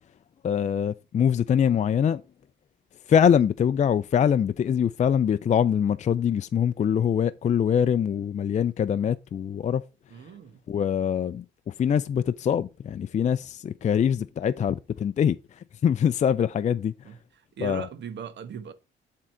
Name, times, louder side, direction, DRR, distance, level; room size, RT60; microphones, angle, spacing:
voice 1, 0.4-2.2 3.1-9.8 10.7-16.9 17.6-17.9, left 8 dB, 35° left, 0.4 m, -24 dB
voice 2, 10.1-10.6 17.0-17.2 17.6-18.7, right 7 dB, 65° right, 1.2 m, -38 dB
11.0 x 3.8 x 4.4 m
cardioid pair, 90°, 20 cm